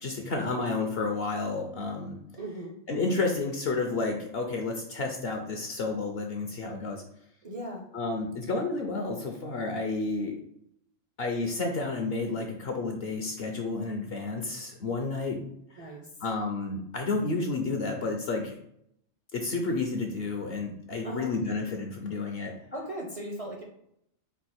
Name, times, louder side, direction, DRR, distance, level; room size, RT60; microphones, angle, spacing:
voice 1, 0.0-2.2 2.9-7.0 7.9-10.3 11.2-15.4 15.7-15.9 16.2-18.6 19.3-22.5, left 3 dB, 60° left, 2 dB, 0.7 m, -31 dB
voice 2, 2.4-2.8 7.4-7.9 10.2-10.4 15.8-16.1 21.0-21.3 22.7-23.6, right 1 dB, 40° right, 0 dB, 0.5 m, -38 dB
4.6 x 2.4 x 4.2 m, 0.73 s
omnidirectional pair, 1.4 m